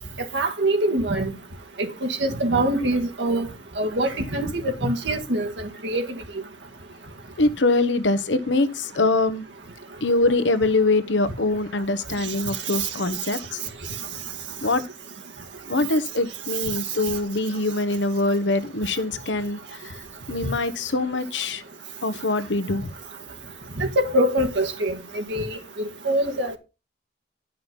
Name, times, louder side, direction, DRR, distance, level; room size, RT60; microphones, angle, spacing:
voice 1, 0.3-1.3 2.0-3.5 3.8-5.5 5.8-6.1 23.8-25.6 26.1-26.5, right 1 dB, 85° right, 1.8 m, -23 dB
voice 2, 7.4-9.5 10.0-13.6 14.6-14.8 15.7-21.6 22.0-22.9, left 2 dB, 90° left, 1.0 m, -23 dB
11.0 x 5.6 x 5.3 m
head